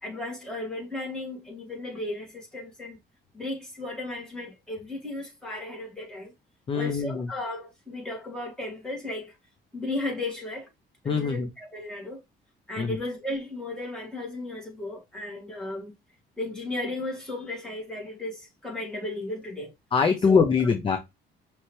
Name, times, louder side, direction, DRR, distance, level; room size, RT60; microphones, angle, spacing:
voice 1, 0.0-3.0 3.3-6.3 6.7-9.3 9.7-10.7 11.0-12.2 12.7-15.9 16.4-19.7 20.3-20.5, left 2 dB, 5° left, 2.2 m, -35 dB
voice 2, 6.7-7.3 11.1-11.5 12.8-13.0 19.9-21.0, left 5 dB, 30° left, 0.6 m, -23 dB
5.5 x 2.9 x 3.1 m
cardioid pair, 140°, 19 cm